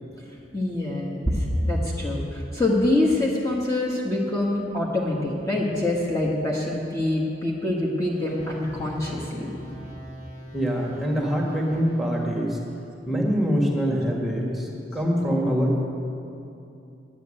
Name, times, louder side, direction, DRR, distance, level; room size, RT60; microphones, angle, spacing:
voice 1, 0.5-9.5, left 1 dB, 20° left, -4 dB, 1.4 m, -25 dB
sound 1, 8.1-12.6, equal, 40° left, 2.6 m, -43 dB
voice 2, 10.5-12.6 13.1-15.8, equal, ahead, -1 dB, 1.7 m, -24 dB
9.8 x 8.4 x 9.8 m, 2.7 s
head